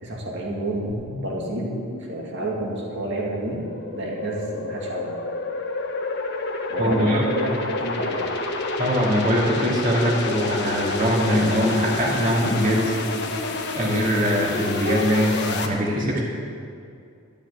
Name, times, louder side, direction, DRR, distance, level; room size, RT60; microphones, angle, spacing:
voice 1, 0.0-1.7 2.1-5.2 6.7-8.2, right 1 dB, 55° right, -2 dB, 2.5 m, -29 dB
sound 1, 0.9-15.7, left 3 dB, 50° left, 1.3 m, -29 dB
voice 2, 6.8-7.2 8.8-12.9 13.7-16.2, equal, 40° right, -4 dB, 2.4 m, -22 dB
13.5 x 6.9 x 9.3 m, 2.3 s
head